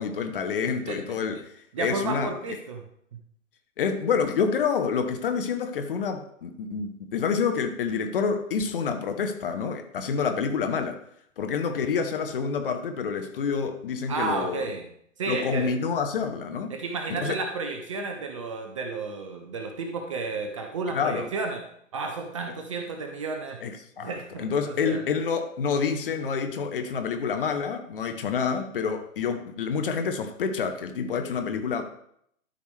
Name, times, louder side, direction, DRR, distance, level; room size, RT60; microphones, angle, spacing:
voice 1, 0.0-1.5 1.8-2.3 3.8-11.0 11.4-14.6 15.3-16.7 17.1-17.4 20.9-21.3 23.6-31.8, left 6 dB, 40° left, 6 dB, 1.0 m, -28 dB
voice 2, 1.7-2.8 14.1-14.9 15.2-15.7 16.7-21.6 21.9-23.6 24.0-25.0, right 3 dB, 25° right, 5 dB, 0.6 m, -32 dB
12.5 x 5.0 x 3.3 m, 0.71 s
figure-of-eight pair, 125°, 41 cm